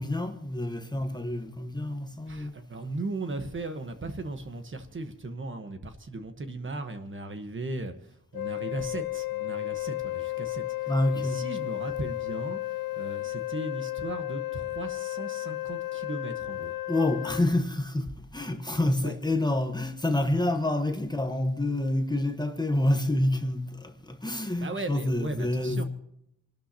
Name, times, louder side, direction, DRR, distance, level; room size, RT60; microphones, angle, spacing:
voice 1, 0.0-2.5 10.9-11.5 16.9-25.8, left 1 dB, 10° left, 1.1 m, -28 dB
voice 2, 2.3-7.9 8.3-10.6 11.1-12.6 13.0-16.7 19.0-19.1 24.6-25.8, right 2 dB, 35° right, 1.2 m, -37 dB
Wind instrument woodwind instrument, 8.3-17.5, left 18 dB, 85° left, 0.7 m, -33 dB
27.5 x 12.0 x 2.9 m
wide cardioid pair, 135°, 35 cm